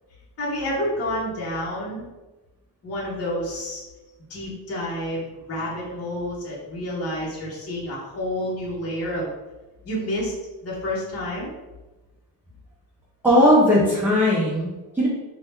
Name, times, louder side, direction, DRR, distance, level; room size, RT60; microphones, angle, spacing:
voice 1, 0.4-2.0 2.8-3.8 4.3-9.3 9.8-10.3 10.6-11.5, left 1 dB, 35° left, -5 dB, 0.9 m, -29 dB
voice 2, 13.2-15.1, equal, 5° right, -5 dB, 0.5 m, -18 dB
2.8 x 2.3 x 3.4 m, 1.1 s
cardioid pair, 95°, 44 cm